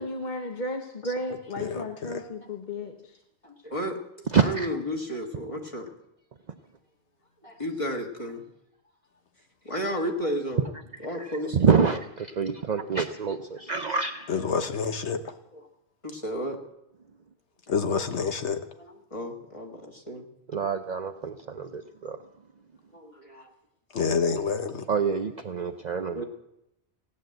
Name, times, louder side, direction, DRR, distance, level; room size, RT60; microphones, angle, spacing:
voice 1, 0.0-3.2, left 1 dB, 45° left, 4 dB, 1.2 m, -34 dB
voice 2, 1.6-2.2 14.3-15.2 17.7-18.6 23.9-24.8, left 5 dB, 75° left, 8 dB, 1.3 m, -27 dB
voice 3, 3.4-4.0 4.3-5.9 7.4-8.4 9.7-10.7 11.0-11.6 15.5-15.7 16.0-16.6 18.8-20.3 22.9-23.5 26.1-26.3, equal, 30° left, 1 dB, 1.7 m, -33 dB
voice 4, 4.3-4.7 11.2-14.3 20.5-22.2 24.9-26.2, right 6 dB, 45° right, 6 dB, 0.7 m, -26 dB
16.5 x 9.5 x 7.8 m, 0.85 s
omnidirectional pair, 1.2 m